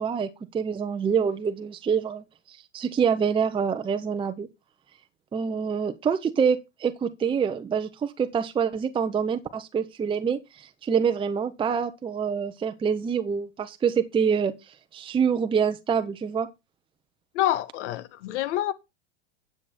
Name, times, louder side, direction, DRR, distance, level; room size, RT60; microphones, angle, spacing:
voice 1, 0.0-4.5 5.3-14.5 14.9-16.5, right 6 dB, 15° right, 0.7 m, -26 dB
voice 2, 17.3-18.7, left 13 dB, 75° left, 1.3 m, -27 dB
9.7 x 7.9 x 4.3 m
supercardioid pair, 140°, 35 cm